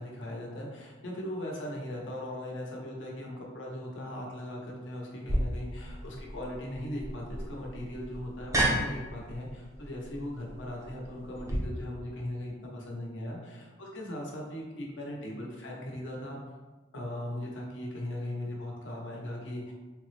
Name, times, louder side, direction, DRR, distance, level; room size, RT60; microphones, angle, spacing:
voice 1, 0.0-16.4 16.9-19.7, left 1 dB, 70° left, -2 dB, 0.7 m, -38 dB
sound 1, 5.3-11.6, right 1 dB, 15° right, 0.4 m, -33 dB
3.3 x 2.0 x 3.1 m, 1.3 s
head